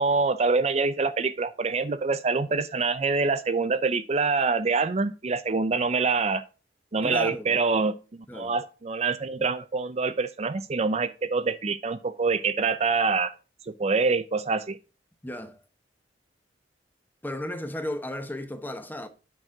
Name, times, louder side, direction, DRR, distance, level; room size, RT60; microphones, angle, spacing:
voice 1, 0.0-6.4 6.9-7.9 8.3-13.3 13.7-14.8, right 4 dB, 35° right, 0.5 m, -25 dB
voice 2, 7.0-7.6 8.3-8.5 15.2-15.6 17.2-19.1, left 1 dB, 10° left, 0.9 m, -34 dB
9.0 x 6.1 x 3.5 m
head